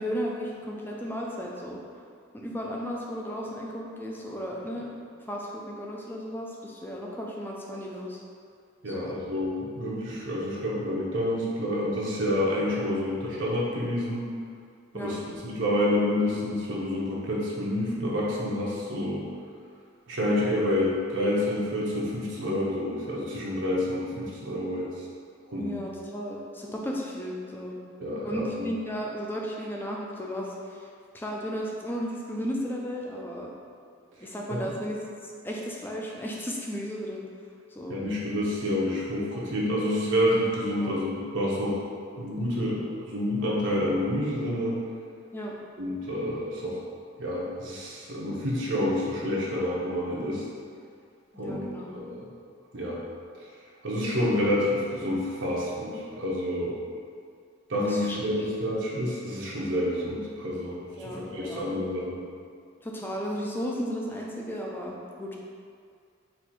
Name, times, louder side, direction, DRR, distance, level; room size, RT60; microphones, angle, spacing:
voice 1, 0.0-1.8 2.3-5.0 5.3-8.2 8.9-9.2 14.9-15.1 25.6-27.8 28.2-30.9 31.1-33.5 34.2-37.3 37.7-38.0 40.8-41.0 45.3-45.5 51.3-52.0 57.8-58.2 61.0-61.7 62.8-65.4, equal, 10° left, -2 dB, 0.4 m, -34 dB
voice 2, 8.8-14.3 14.9-15.2 15.4-19.3 20.1-24.9 25.5-25.8 28.0-28.7 34.2-34.3 34.5-34.6 37.9-41.8 42.2-44.8 45.8-46.8 47.2-50.4 51.4-51.6 51.9-52.3 52.7-53.0 53.8-56.7 57.7-62.2, left 1 dB, 75° right, -5 dB, 0.8 m, -28 dB
4.3 x 2.6 x 4.1 m, 2.2 s
head